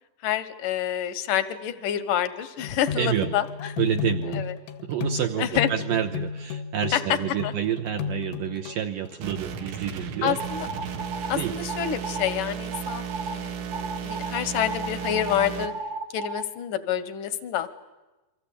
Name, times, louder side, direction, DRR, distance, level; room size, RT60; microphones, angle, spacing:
voice 1, 0.2-3.7 4.4-4.5 5.4-5.7 6.9-7.2 7.4-7.5 10.2-10.7 11.3-15.7 16.1-17.7, left 11 dB, 70° left, 13 dB, 2.0 m, -28 dB
sound 1, 2.6-9.5, left 6 dB, 85° left, 3.8 m, -33 dB
voice 2, 3.0-3.4 3.8-4.4 4.8-10.4 11.4-11.6, right 9 dB, 75° right, 4 dB, 2.1 m, -28 dB
sound 2, 9.2-15.7, right 7 dB, 90° right, 4.5 m, -34 dB
sound 3, 10.4-11.3 11.7-12.4 12.7-13.3 13.7-16.4, right 3 dB, 50° right, 1.3 m, -34 dB
29.0 x 24.5 x 8.5 m, 1.1 s
omnidirectional pair, 5.2 m